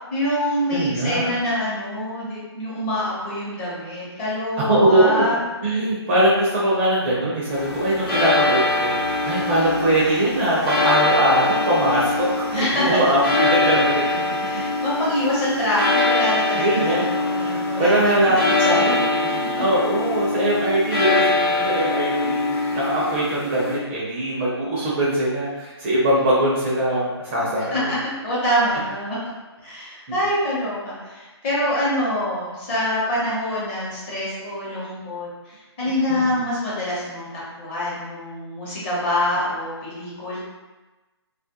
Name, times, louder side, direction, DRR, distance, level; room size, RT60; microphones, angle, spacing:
voice 1, 0.1-5.4 12.5-13.0 14.4-18.3 18.6-18.9 27.7-29.2 29.6-40.4, left 1 dB, 25° left, -8 dB, 0.8 m, -25 dB
voice 2, 0.7-1.3 4.6-5.3 5.6-14.2 16.5-17.1 17.3-18.4 18.6-19.3 19.5-27.9 36.1-36.4, right 1 dB, 30° right, -6 dB, 0.5 m, -21 dB
sound 1, 7.5-23.8, left 2 dB, 55° left, 0.9 m, -23 dB
2.3 x 2.0 x 2.8 m, 1.1 s
figure-of-eight pair, 145°, 14 cm